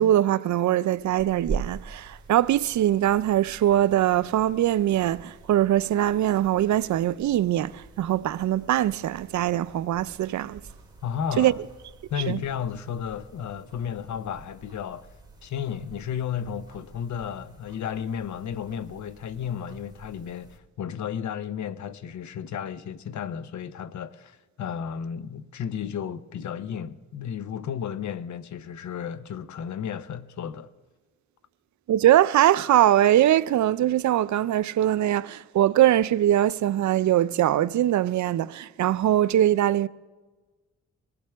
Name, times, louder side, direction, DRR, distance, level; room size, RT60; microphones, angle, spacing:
voice 1, 0.0-10.6 11.4-11.5 12.3-12.4 31.9-39.9, right 12 dB, 75° right, 0.5 m, -22 dB
sound 1, 0.9-20.6, right 4 dB, 15° right, 2.3 m, -44 dB
voice 2, 11.0-11.6 12.1-15.1 15.4-30.7, left 8 dB, 75° left, 0.7 m, -33 dB
23.0 x 15.5 x 3.4 m
cardioid pair, 90°, 29 cm